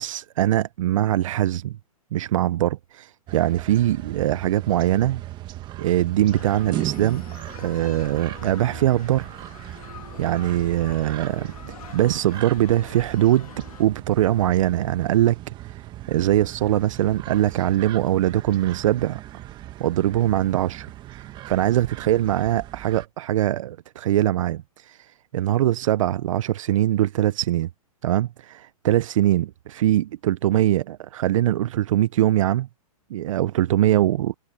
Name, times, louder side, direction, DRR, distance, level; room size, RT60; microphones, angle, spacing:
voice 1, 0.0-1.7 2.1-5.2 5.8-7.2 7.6-9.3 10.2-11.5 11.9-13.5 13.8-15.4 16.1-19.2 19.8-21.2 21.4-25.0 25.3-27.7 28.0-32.7 33.1-34.3, right 13 dB, 60° right, 0.7 m, -22 dB
sound 1, 3.3-23.1, right 14 dB, 25° right, 1.6 m, -38 dB
sound 2, 6.3-13.9, left 10 dB, 70° left, 1.9 m, -44 dB
hypercardioid pair, 145°, 19 cm